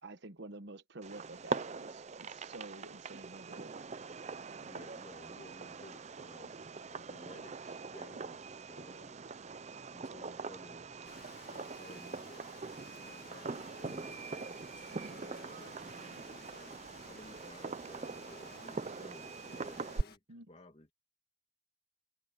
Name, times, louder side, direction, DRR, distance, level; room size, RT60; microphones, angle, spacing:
voice 1, 0.0-3.7 20.3-20.5, right 2 dB, 55° right, 1.1 m, -49 dB
Fireworks, 1.0-20.0, right 4 dB, 35° right, 0.5 m, -43 dB
voice 2, 4.6-6.5 6.9-9.2 9.8-10.8 11.4-12.6 13.0-14.5 14.8-16.8 17.0-20.2 20.5-20.9, left 1 dB, 30° left, 1.5 m, -56 dB
Rain, 11.0-20.2, left 6 dB, 45° left, 1.8 m, -57 dB
head